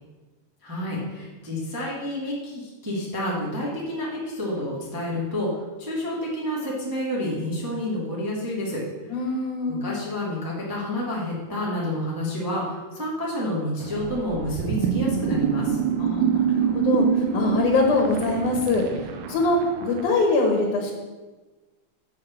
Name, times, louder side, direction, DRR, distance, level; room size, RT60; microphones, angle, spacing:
voice 1, 0.6-8.8 9.7-15.8, left 1 dB, 10° right, -5 dB, 1.4 m, -29 dB
voice 2, 9.1-9.8 16.0-18.8 19.3-20.9, left 3 dB, 70° left, 1 dB, 2.6 m, -23 dB
sound 1, 13.8-20.1, right 8 dB, 75° right, 2.0 m, -26 dB
7.6 x 5.5 x 7.1 m, 1.2 s
omnidirectional pair, 3.8 m